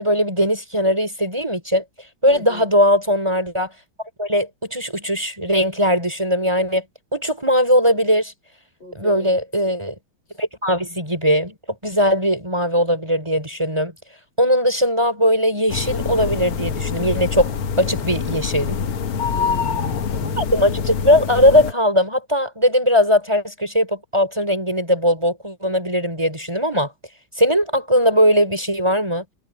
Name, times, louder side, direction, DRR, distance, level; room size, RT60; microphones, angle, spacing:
voice 1, 0.0-1.8 2.2-3.7 4.2-6.8 7.1-8.3 8.9-9.9 10.4-11.5 11.8-13.9 14.4-18.8 20.4-26.9 27.4-29.2, equal, 10° right, 4.5 m, -19 dB
voice 2, 2.3-2.7 8.8-9.4 19.3-20.5, right 1 dB, 60° left, 5.0 m, -38 dB
sound 1, 15.7-21.7, left 6 dB, 80° left, 2.2 m, -25 dB
omnidirectional pair, 2.3 m